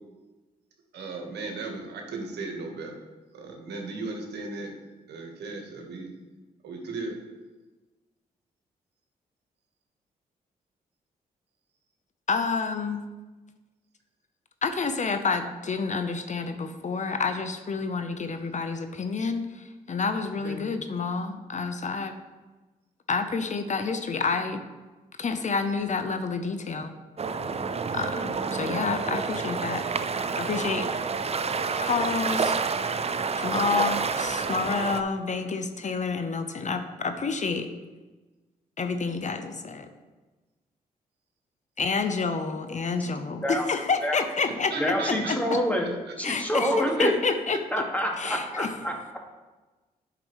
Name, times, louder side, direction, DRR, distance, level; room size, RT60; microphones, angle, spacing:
voice 1, 0.9-3.0 3.3-4.7 5.1-6.1 6.6-7.2 20.4-20.6 44.7-45.4 45.8-45.9 46.6-47.1 47.5-47.6 48.2-48.3, right 3 dB, 70° right, 2 dB, 1.4 m, -36 dB
voice 2, 12.3-13.0 14.6-22.1 23.1-24.6 25.2-26.9 27.9-29.9 30.4-30.9 31.8-32.6 33.4-37.7 38.8-39.9 41.8-45.4 46.2-47.6 48.2-48.7, left 4 dB, 45° left, 8 dB, 0.7 m, -29 dB
sound 1, 27.2-35.0, right 5 dB, 35° right, 0.6 m, -29 dB
voice 3, 44.8-45.9 46.2-47.1 47.7-49.2, equal, 10° left, 1 dB, 1.9 m, -27 dB
8.7 x 5.9 x 3.2 m, 1.2 s
hypercardioid pair, 45°, 18 cm